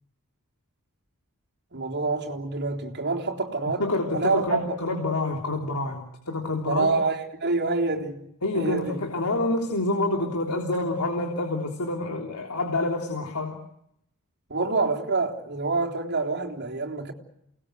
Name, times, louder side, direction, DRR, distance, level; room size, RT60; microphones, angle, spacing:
voice 1, 1.7-3.9 4.1-4.8 6.6-9.0 14.5-17.1, right 3 dB, 50° right, 3.7 m, -27 dB
voice 2, 3.8-6.9 8.4-13.6, left 2 dB, 80° left, 3.4 m, -27 dB
29.0 x 20.0 x 8.1 m
head